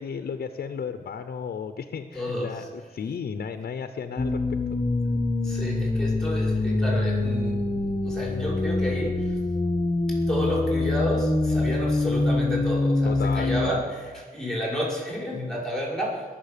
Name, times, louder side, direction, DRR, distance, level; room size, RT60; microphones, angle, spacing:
voice 1, 0.0-4.8 13.0-13.8, left 6 dB, 80° left, 8 dB, 0.8 m, -34 dB
voice 2, 2.1-2.5 5.4-9.4 10.1-16.2, left 1 dB, 5° left, -3 dB, 5.7 m, -30 dB
sound 1, 4.2-13.7, left 2 dB, 30° left, 1.2 m, -25 dB
21.0 x 7.5 x 6.8 m, 1.5 s
cardioid pair, 65°, 16 cm